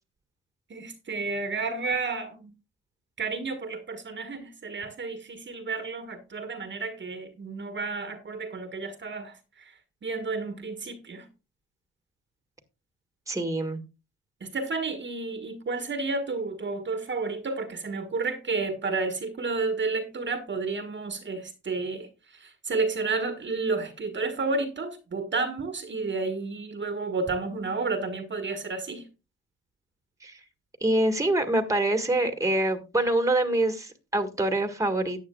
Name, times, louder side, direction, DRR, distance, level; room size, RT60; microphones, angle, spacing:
voice 1, 0.7-2.5 3.2-11.2 14.4-29.0, right 3 dB, 40° right, 1.4 m, -31 dB
voice 2, 13.3-13.8 30.2-30.4 30.8-35.2, right 1 dB, 10° right, 1.6 m, -25 dB
14.0 x 9.2 x 2.3 m
cardioid pair, 90°, 30 cm